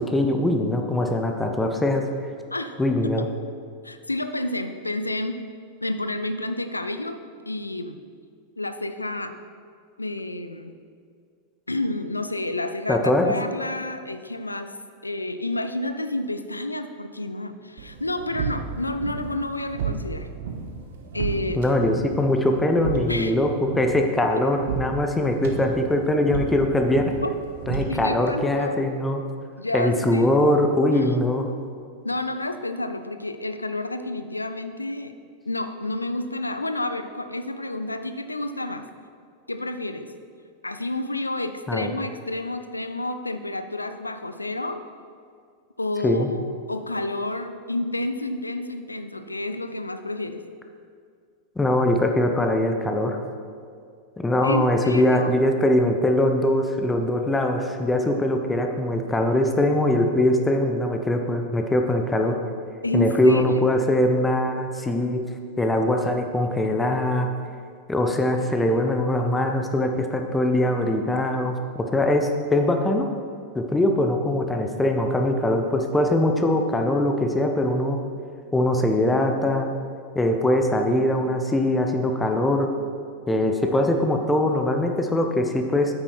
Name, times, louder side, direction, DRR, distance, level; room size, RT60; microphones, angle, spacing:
voice 1, 0.0-2.1 2.8-3.2 12.9-13.3 21.6-27.1 27.7-29.2 29.7-31.5 41.7-41.9 46.0-46.3 51.6-53.2 54.2-62.4 62.9-65.2 65.6-67.3 67.9-73.1 73.5-78.0 78.5-79.7 80.1-82.7 83.3-85.9, left 1 dB, 10° left, 4 dB, 0.9 m, -22 dB
voice 2, 3.8-5.4 5.8-7.2 7.5-8.0 8.6-9.3 10.0-10.7 11.7-14.7 15.0-20.3 21.1-21.6 23.1-23.4 27.2-27.3 27.9-28.9 29.6-30.4 30.9-31.2 32.0-35.1 35.5-38.9 39.5-40.1 40.6-44.8 45.8-50.4 54.4-55.4 62.8-63.7, left 2 dB, 85° left, 10 dB, 0.5 m, -30 dB
sound 1, 17.8-28.3, right 6 dB, 60° right, 1.1 m, -33 dB
8.9 x 8.7 x 4.6 m, 2.2 s
figure-of-eight pair, 90°, 0 cm